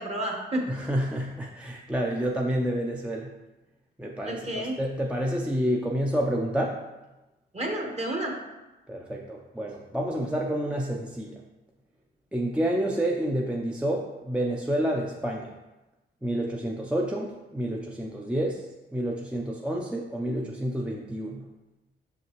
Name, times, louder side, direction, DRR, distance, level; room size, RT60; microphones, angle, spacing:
voice 1, 0.0-0.7 4.2-4.7 7.5-8.3, right 1 dB, 35° right, 1 dB, 1.4 m, -30 dB
voice 2, 0.7-3.3 4.0-6.8 8.9-11.4 12.3-15.5 16.2-18.7 18.9-21.5, right 1 dB, 5° right, -1 dB, 0.6 m, -29 dB
5.7 x 5.6 x 3.1 m, 1.0 s
cardioid pair, 80°, 19 cm